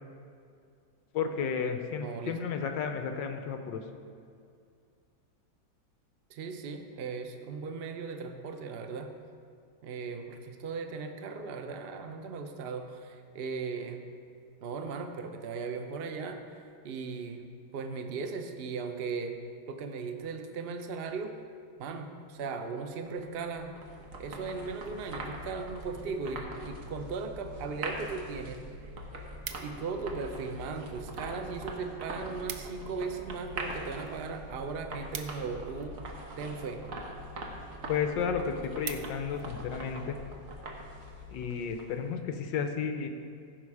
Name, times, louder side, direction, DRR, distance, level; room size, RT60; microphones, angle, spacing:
voice 1, 1.1-3.8 37.9-40.2 41.3-43.1, left 6 dB, 70° left, 6 dB, 1.4 m, -32 dB
voice 2, 2.0-2.4 6.3-9.1 9.8-14.0 14.6-17.4 17.7-19.3 19.7-21.3 21.8-23.8 24.2-28.9 29.6-36.0 36.4-36.8, right 4 dB, 85° right, 5 dB, 0.5 m, -37 dB
sound 1, 23.1-42.1, right 1 dB, 50° right, 1.3 m, -42 dB
sound 2, 28.3-28.4 28.7-30.0 30.7-31.3 31.6-31.7 31.9-32.0 32.3-32.9 33.2-36.1 36.8-37.2 37.7-37.8 38.1-38.2 38.5-39.5 39.9-40.2, right 8 dB, 65° right, 0.9 m, -44 dB
15.0 x 5.9 x 4.8 m, 2.4 s
omnidirectional pair, 2.1 m